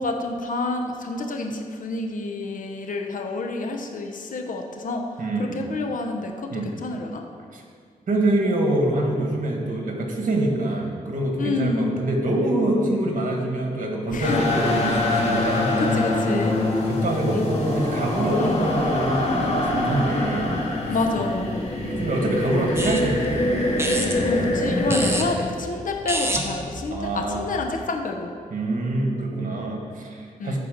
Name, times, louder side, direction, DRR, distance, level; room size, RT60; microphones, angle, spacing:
voice 1, 0.0-7.2 11.4-11.9 14.1-14.4 15.8-16.6 17.3-17.5 18.4-18.6 20.9-21.5 24.2-28.3 30.4-30.6, left 3 dB, 65° left, 3 dB, 1.0 m, -28 dB
voice 2, 5.2-5.7 6.5-6.7 7.5-7.6 8.1-15.8 16.2-16.5 16.9-20.5 20.9-21.0 21.7-23.6 26.9-27.6 28.5-30.6, right 1 dB, 60° right, 1 dB, 1.9 m, -25 dB
sound 1, 14.2-25.2, left 2 dB, 45° left, 2.3 m, -24 dB
sound 2, 22.8-27.6, right 1 dB, 15° right, 1.2 m, -31 dB
14.0 x 4.7 x 5.2 m, 2.2 s
cardioid pair, 75°, 15 cm